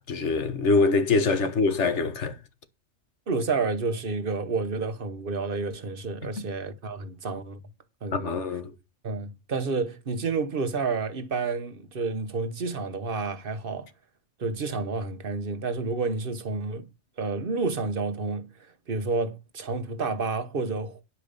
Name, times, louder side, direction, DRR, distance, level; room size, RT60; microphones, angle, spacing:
voice 1, 0.0-2.3 8.1-8.7, left 3 dB, 65° left, 1.6 m, -24 dB
voice 2, 3.3-7.6 8.0-8.4 9.0-13.9 14.4-16.8 17.2-18.5 18.9-21.0, right 4 dB, 45° right, 1.2 m, -30 dB
9.8 x 5.1 x 6.7 m
omnidirectional pair, 1.3 m